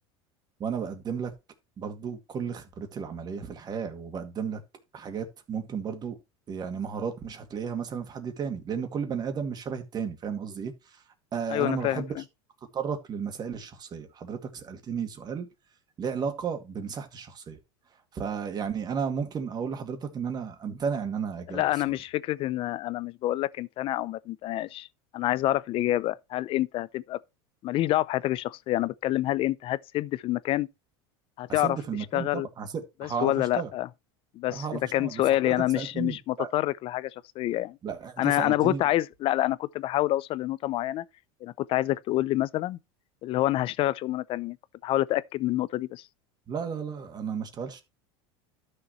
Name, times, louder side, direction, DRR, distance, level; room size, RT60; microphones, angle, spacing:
voice 1, 0.6-1.3 1.8-4.6 4.9-6.2 6.5-11.0 11.3-12.2 12.7-15.5 16.0-17.6 17.9-22.0 31.5-33.7 34.5-36.5 37.8-38.8 46.5-47.8, right 6 dB, 30° right, 2.1 m, -33 dB
voice 2, 11.5-12.0 21.5-24.9 25.1-27.2 27.6-30.7 31.4-31.8 32.1-32.5 33.0-33.9 34.3-34.6 34.9-37.1 37.4-37.8 38.2-41.0 41.4-42.8 43.2-44.6 44.8-46.0, left 15 dB, 45° left, 0.5 m, -27 dB
12.5 x 6.6 x 3.1 m
supercardioid pair, 125°, 13 cm